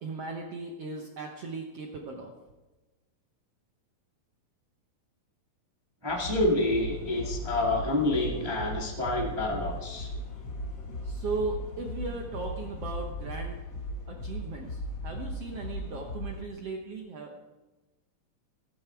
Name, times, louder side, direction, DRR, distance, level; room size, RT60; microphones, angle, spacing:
voice 1, 0.0-2.3 11.0-13.6 14.1-17.6, right 3 dB, 70° right, 2 dB, 1.5 m, -37 dB
voice 2, 6.0-10.1, left 2 dB, 15° right, -1 dB, 0.9 m, -28 dB
sound 1, 6.1-16.4, left 1 dB, 45° left, 1.3 m, -37 dB
14.5 x 13.5 x 4.6 m, 1.1 s
omnidirectional pair, 4.1 m